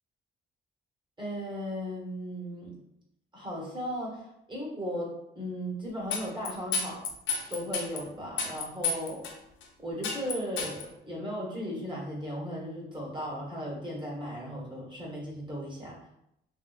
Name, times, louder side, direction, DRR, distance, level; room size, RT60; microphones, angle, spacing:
voice 1, 1.2-2.8 3.3-7.0 7.5-9.3 9.8-16.0, equal, 25° right, -4 dB, 1.2 m, -36 dB
sound 1, 6.1-8.0 8.4-9.3 9.6-9.7 10.0-10.8, left 4 dB, 75° left, 0.5 m, -31 dB
3.2 x 2.8 x 2.4 m, 0.79 s
cardioid pair, 90°, 20 cm